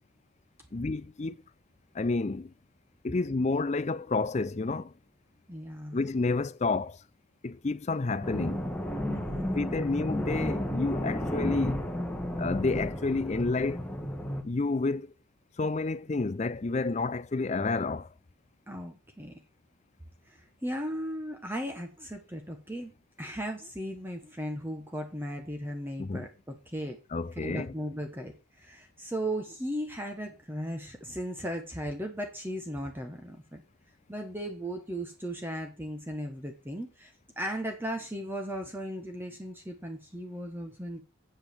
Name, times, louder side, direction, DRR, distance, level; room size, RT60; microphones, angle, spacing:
voice 1, 0.7-1.4 1.9-2.5 3.0-4.9 5.9-7.0 7.4-8.7 9.6-11.8 12.4-13.8 14.4-15.1 15.6-18.1 26.0-26.3 27.1-27.7, left 3 dB, 35° left, 0.4 m, -30 dB
voice 2, 5.5-6.1 9.1-9.9 18.7-19.4 20.3-22.9 23.2-27.0 27.4-33.6 34.1-41.0, equal, 10° right, 1.2 m, -37 dB
sound 1, 8.2-14.4, left 1 dB, 5° left, 1.4 m, -32 dB
8.0 x 7.9 x 7.1 m
head